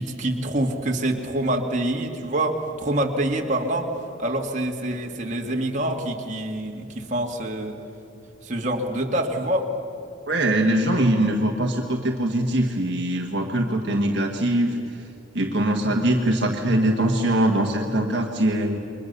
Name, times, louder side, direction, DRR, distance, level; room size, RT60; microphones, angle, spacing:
voice 1, 0.0-3.9 4.2-7.8 8.4-9.7, right 1 dB, 35° right, 1 dB, 2.2 m, -26 dB
voice 2, 10.3-15.0 15.3-18.8, right 1 dB, 55° right, 1 dB, 1.7 m, -22 dB
29.5 x 23.0 x 6.9 m, 2.6 s
head